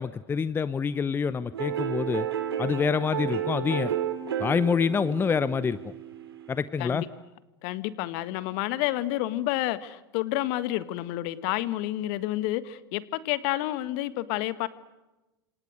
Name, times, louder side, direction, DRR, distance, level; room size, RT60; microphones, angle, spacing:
voice 1, 0.0-2.3 2.6-4.0 4.4-5.9 6.5-7.0, left 6 dB, 15° left, 16 dB, 0.8 m, -26 dB
sound 1, 1.5-6.6, right 9 dB, 70° right, 3.2 m, -32 dB
voice 2, 7.6-14.7, left 15 dB, 50° left, 15 dB, 1.6 m, -30 dB
28.5 x 26.5 x 6.5 m, 1.1 s
figure-of-eight pair, 90°, 13 cm